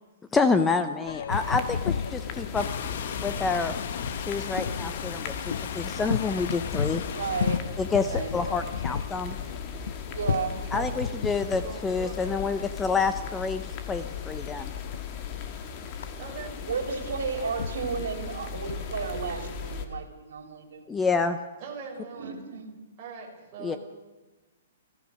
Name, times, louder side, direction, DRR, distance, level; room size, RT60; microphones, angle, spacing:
voice 1, 0.3-2.7 3.2-3.7 4.3-7.0 7.8-9.4 10.7-14.7 20.9-21.4 23.6-23.8, left 4 dB, 5° left, 10 dB, 0.6 m, -28 dB
Boat Water vehicle, 1.1-20.1, left 6 dB, 75° left, 0.7 m, -36 dB
sound 1, 1.3-19.9, left 6 dB, 25° left, 1.6 m, -38 dB
voice 2, 1.5-2.0 10.6-12.5 16.2-16.6 21.6-22.3 23.0-23.8, right 5 dB, 25° right, -2 dB, 5.2 m, -42 dB
sound 2, 2.5-7.6, left 8 dB, 45° left, 1.3 m, -36 dB
voice 3, 7.1-7.7 8.1-8.3 10.1-10.6 16.6-20.9 22.1-22.7, right 5 dB, 75° right, 6 dB, 3.3 m, -33 dB
30.0 x 14.5 x 6.4 m, 1.2 s
hypercardioid pair, 175°, 0 cm